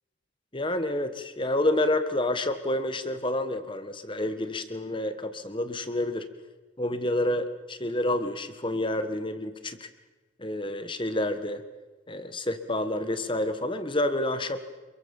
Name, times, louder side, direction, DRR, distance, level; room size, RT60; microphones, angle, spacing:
voice 1, 0.5-6.3 6.8-9.9 10.4-11.6 12.1-14.6, left 1 dB, 25° left, 10 dB, 1.7 m, -29 dB
27.5 x 22.5 x 7.3 m, 1.2 s
head